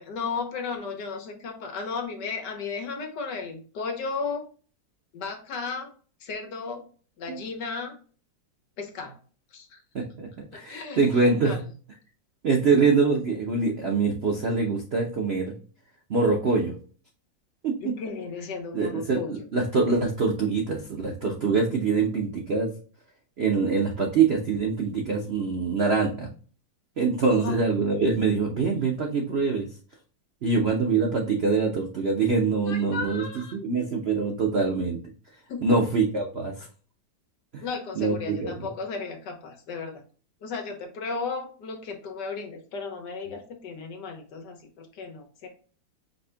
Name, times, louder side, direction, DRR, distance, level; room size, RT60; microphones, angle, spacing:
voice 1, 0.0-4.4 5.1-5.9 6.2-6.8 7.2-8.0 8.8-9.1 9.5-9.8 10.7-11.7 17.8-19.5 27.4-27.6 32.7-33.6 35.5-35.7 37.6-40.0 40.4-45.5, left 4 dB, 65° left, 3 dB, 1.5 m, -34 dB
voice 2, 9.9-11.6 12.4-15.5 16.1-16.7 17.6-17.9 18.7-22.7 23.4-26.3 27.0-29.6 30.4-33.2 33.5-35.0 35.6-36.7 37.5-37.6 38.0-38.7, right 4 dB, 80° right, 1 dB, 0.5 m, -24 dB
5.2 x 2.8 x 3.3 m, 0.40 s
omnidirectional pair, 2.1 m